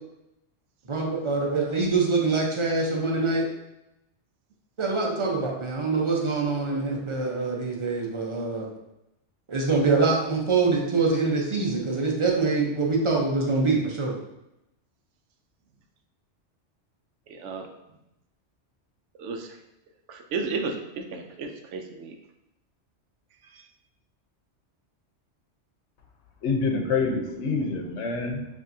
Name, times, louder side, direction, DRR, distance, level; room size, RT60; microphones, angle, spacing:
voice 1, 0.9-3.4 4.8-8.6 9.5-14.1, right 3 dB, 30° right, -1 dB, 0.7 m, -24 dB
voice 2, 17.3-17.7 19.2-19.5 20.1-22.2, right 4 dB, 90° right, 5 dB, 0.9 m, -33 dB
voice 3, 26.4-28.5, left 4 dB, 75° left, 2 dB, 1.0 m, -26 dB
5.4 x 2.7 x 2.7 m, 0.88 s
omnidirectional pair, 1.2 m